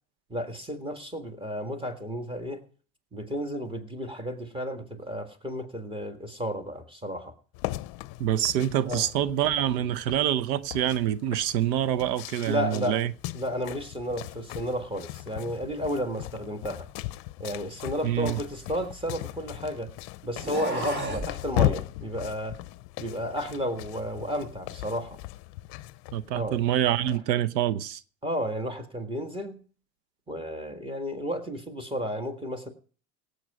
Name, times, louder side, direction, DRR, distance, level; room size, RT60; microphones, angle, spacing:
voice 1, 0.3-2.6 3.1-7.3 8.8-9.1 12.5-13.0 13.3-16.9 17.4-19.9 20.2-22.6 23.0-25.2 26.3-26.6 27.1-27.2 28.2-29.6 30.3-32.7, equal, 10° right, 1.7 m, -32 dB
sound 1, 7.5-27.2, left 17 dB, 50° left, 0.7 m, -37 dB
voice 2, 8.2-13.1 18.0-18.4 26.1-28.0, right 11 dB, 90° right, 0.8 m, -26 dB
Monster Growl and Roar, 18.1-19.6 20.3-21.3, right 1 dB, 35° right, 2.9 m, -35 dB
17.5 x 8.1 x 4.8 m
supercardioid pair, 130°, 49 cm